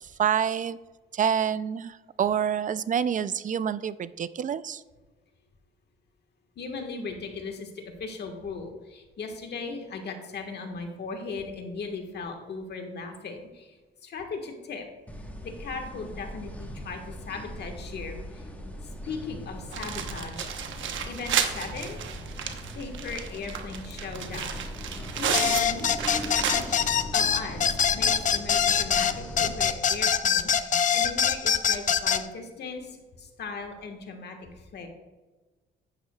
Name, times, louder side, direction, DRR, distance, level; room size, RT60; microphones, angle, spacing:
voice 1, 0.2-0.8 1.1-4.8, right 8 dB, 40° right, 15 dB, 0.4 m, -27 dB
voice 2, 6.5-14.9 15.4-18.5 19.0-20.5 21.1-22.0 22.7-24.6 25.1-25.9 26.5-26.8 27.1-34.9, left 4 dB, 55° left, 4 dB, 1.5 m, -38 dB
sound 1, 15.1-29.7, equal, 5° left, 1.3 m, -40 dB
sound 2, 19.7-27.0 27.3-27.4 27.8-27.9 29.1-29.2, right 8 dB, 75° right, 1.0 m, -32 dB
sound 3, 25.3-32.2, left 7 dB, 40° left, 0.5 m, -24 dB
9.9 x 9.8 x 2.3 m, 1.2 s
cardioid pair, 90°, 20 cm